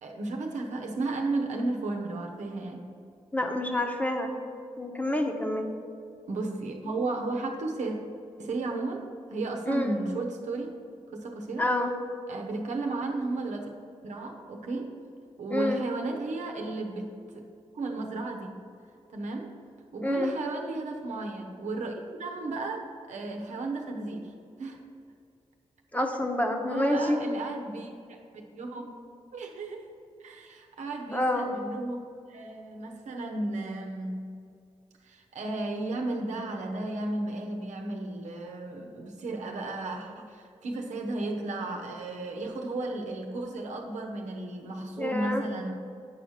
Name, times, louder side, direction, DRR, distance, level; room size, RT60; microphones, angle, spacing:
voice 1, 0.0-2.9 6.3-8.0 8.4-10.8 11.1-11.7 12.3-13.7 14.0-15.0 15.4-17.4 17.7-18.6 19.1-19.5 19.9-21.9 22.2-24.3 24.6-24.8 25.9-26.1 26.7-29.0 29.3-29.9 30.2-32.0 32.3-34.3 35.0-45.7, right 2 dB, 90° right, 2 dB, 0.9 m, -34 dB
voice 2, 3.3-4.3 4.8-5.7 9.7-10.0 11.6-11.9 15.5-15.8 20.0-20.3 25.9-27.2 31.1-31.5 45.0-45.4, left 1 dB, 15° left, 3 dB, 1.0 m, -27 dB
8.1 x 4.9 x 5.7 m, 2.4 s
cardioid pair, 60°, 12 cm